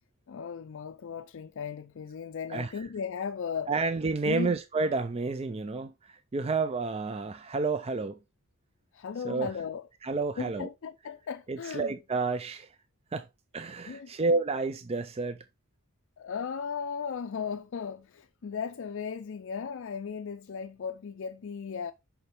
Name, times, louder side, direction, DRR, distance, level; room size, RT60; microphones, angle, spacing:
voice 1, 0.3-3.7 4.2-4.5 8.9-9.9 10.4-11.9 13.9-14.1 16.2-21.9, left 6 dB, 60° left, 0.4 m, -36 dB
voice 2, 3.7-8.2 9.2-9.5 10.0-10.7 11.5-12.7 13.1-13.3 13.5-15.4, right 3 dB, 25° right, 0.4 m, -30 dB
6.8 x 5.6 x 3.3 m
head